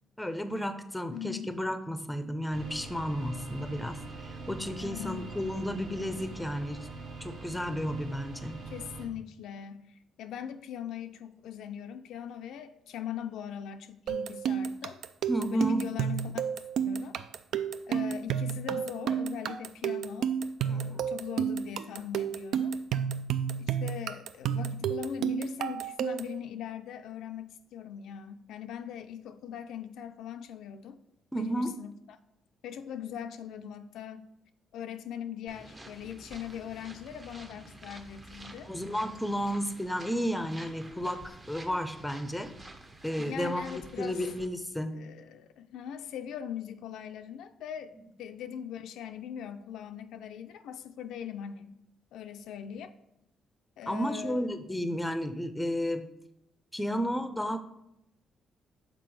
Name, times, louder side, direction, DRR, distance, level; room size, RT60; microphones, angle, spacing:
voice 1, 0.2-4.0 4.2-6.9 7.2-8.6 15.3-15.8 20.7-21.0 31.3-31.7 38.7-42.5 43.0-45.0 53.9-56.1 56.7-57.6, equal, 5° left, 9 dB, 0.6 m, -32 dB
voice 2, 1.1-1.5 4.8-5.3 8.7-15.0 15.5-16.4 16.8-17.2 17.9-20.3 20.6-22.7 23.6-31.0 31.3-31.9 32.6-34.3 34.7-38.7 43.2-44.2 44.9-47.9 48.2-51.8 52.1-52.9 53.8-54.7, left 9 dB, 85° left, 8 dB, 0.4 m, -40 dB
sound 1, 2.5-9.1, right 3 dB, 60° right, 1.3 m, -43 dB
sound 2, 14.1-26.4, right 8 dB, 75° right, 0.3 m, -31 dB
sound 3, 35.5-44.5, right 2 dB, 25° right, 0.8 m, -50 dB
6.0 x 4.1 x 4.7 m, 0.80 s
cardioid pair, 90°, 0 cm